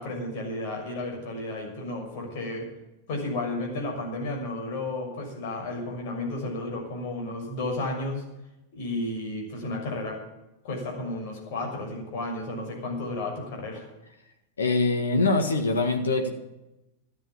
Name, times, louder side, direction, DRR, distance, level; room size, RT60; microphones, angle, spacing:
voice 1, 0.0-2.7 3.1-8.2 8.7-10.2 10.6-13.9, left 2 dB, 50° left, 0 dB, 6.5 m, -32 dB
voice 2, 14.6-16.3, left 3 dB, 70° left, 5 dB, 1.8 m, -23 dB
14.0 x 9.7 x 8.6 m, 0.92 s
figure-of-eight pair, 90°, 0 cm